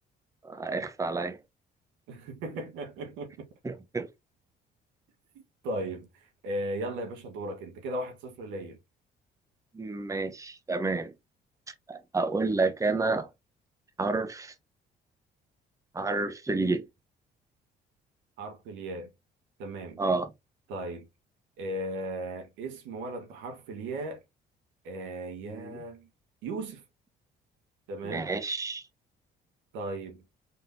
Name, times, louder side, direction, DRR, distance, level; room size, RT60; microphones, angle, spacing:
voice 1, 0.4-1.4 3.6-4.1 9.7-11.1 11.9-13.3 14.0-14.5 15.9-16.8 20.0-20.3 25.5-25.8 28.0-28.8, right 3 dB, 15° right, 0.9 m, -30 dB
voice 2, 2.1-3.5 5.6-8.8 18.4-19.1 19.6-20.0 20.7-21.1 21.6-24.2 24.8-26.1 26.4-26.8 27.9-28.3 29.7-30.2, right 1 dB, 90° right, 1.4 m, -36 dB
4.3 x 3.5 x 2.6 m
cardioid pair, 80°, 19 cm